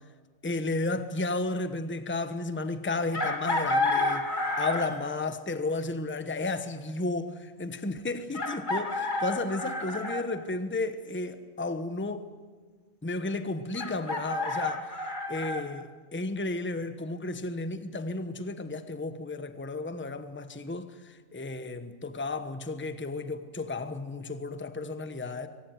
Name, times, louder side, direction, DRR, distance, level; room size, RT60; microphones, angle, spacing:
voice 1, 0.4-12.3 13.0-25.5, left 3 dB, 10° left, 1.0 m, -33 dB
Chicken rooster, 3.1-5.1 6.8-6.9 8.3-10.3 13.7-15.6, left 2 dB, 35° left, 2.6 m, -30 dB
23.5 x 19.0 x 9.3 m
omnidirectional pair, 1.4 m